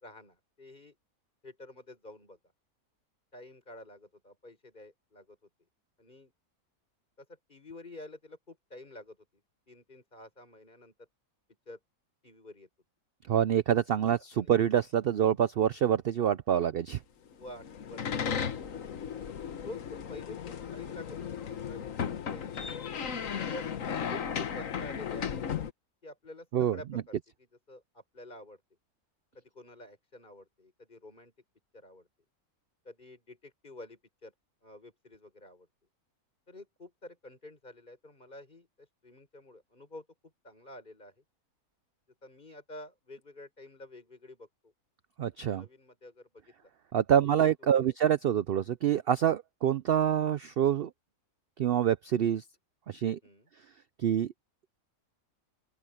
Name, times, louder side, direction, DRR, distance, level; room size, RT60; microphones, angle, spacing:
voice 1, 0.0-0.9 1.4-2.4 3.3-5.4 6.0-6.3 7.2-9.2 9.7-10.9 11.7-11.8 12.2-12.7 13.9-14.0 14.4-14.5 17.3-18.9 19.6-22.7 23.2-25.4 26.0-27.2 27.7-28.6 29.3-31.3 31.7-32.1 32.9-34.3 34.6-35.7 36.5-38.7 39.0-40.0 40.4-41.1 42.2-44.7 45.4-46.7 47.6-47.9 53.2-53.5, left 1 dB, 30° left, 5.8 m, -49 dB
voice 2, 13.3-17.0 26.5-26.8 45.2-45.6 46.9-50.9 51.6-52.4 52.9-53.2 54.0-54.3, right 9 dB, 80° right, 0.5 m, -26 dB
sound 1, 17.4-25.7, left 7 dB, 65° left, 1.5 m, -35 dB
open air
omnidirectional pair, 1.6 m